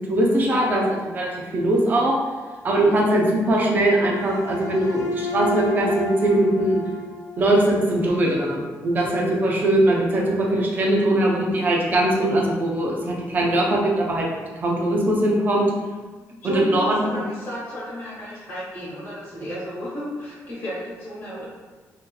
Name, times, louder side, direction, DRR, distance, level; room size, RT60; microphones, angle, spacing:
voice 1, 0.0-2.1 2.6-6.8 7.4-14.3 14.6-15.7 16.4-17.0, right 1 dB, 30° right, -1 dB, 0.6 m, -21 dB
sound 1, 4.0-8.3, left 1 dB, 75° left, 0.5 m, -32 dB
voice 2, 16.3-21.4, equal, 35° left, -9 dB, 1.2 m, -33 dB
3.1 x 2.8 x 3.9 m, 1.4 s
cardioid pair, 180°, 6 cm